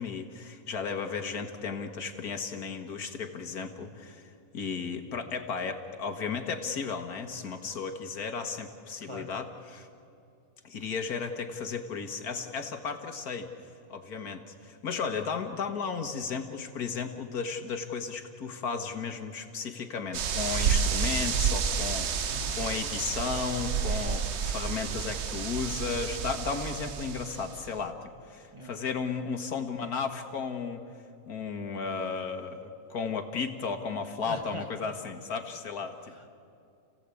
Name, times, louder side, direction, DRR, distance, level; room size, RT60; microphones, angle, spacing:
voice 1, 0.0-9.9 10.6-13.5 13.9-30.8 31.3-36.1, left 5 dB, 80° left, 6 dB, 2.0 m, -34 dB
sound 1, 20.1-27.6, right 7 dB, 55° right, 1.1 m, -30 dB
voice 2, 22.3-22.7 28.5-28.8 34.2-34.9 36.1-36.3, right 1 dB, 20° right, 2 dB, 2.0 m, -42 dB
30.0 x 17.0 x 8.4 m, 2.5 s
omnidirectional pair, 1.6 m